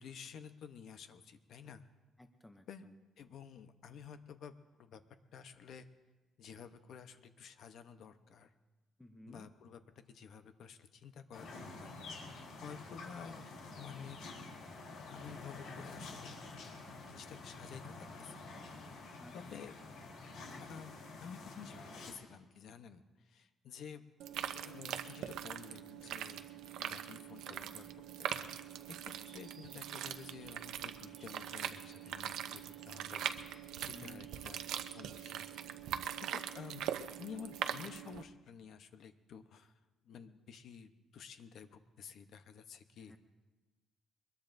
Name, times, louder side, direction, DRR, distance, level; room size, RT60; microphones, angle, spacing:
voice 1, 0.0-1.8 2.7-2.9 3.2-5.0 5.3-5.9 6.4-8.5 9.3-11.9 12.5-13.4 13.7-14.2 15.1-16.4 17.1-18.6 19.3-19.8 20.4-24.0 24.5-26.5 26.8-28.6 29.0-34.6 34.9-35.5 36.2-39.8 40.0-43.2, left 7 dB, 55° left, 9 dB, 0.8 m, -52 dB
voice 2, 2.2-2.7 9.0-9.5 19.2-19.3 33.9-34.2 43.0-43.2, left 1 dB, 5° left, 7 dB, 0.5 m, -54 dB
sound 1, 11.3-22.1, left 3 dB, 80° left, 3.4 m, -49 dB
sound 2, 24.2-38.2, right 10 dB, 80° right, 0.7 m, -42 dB
sound 3, 29.2-36.2, right 3 dB, 20° right, 4.4 m, -64 dB
23.0 x 21.0 x 2.6 m, 1.2 s
cardioid pair, 170°, 0 cm